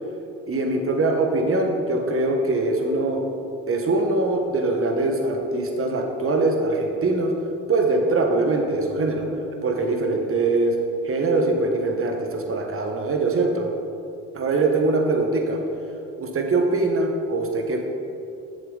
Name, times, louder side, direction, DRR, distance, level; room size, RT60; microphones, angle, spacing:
voice 1, 0.5-3.2 3.7-7.3 7.7-9.3 9.6-10.7 11.0-13.7 14.3-15.6 16.2-17.8, right 2 dB, 35° right, 3 dB, 1.4 m, -22 dB
7.6 x 6.9 x 4.0 m, 2.7 s
hypercardioid pair, 60°, 37 cm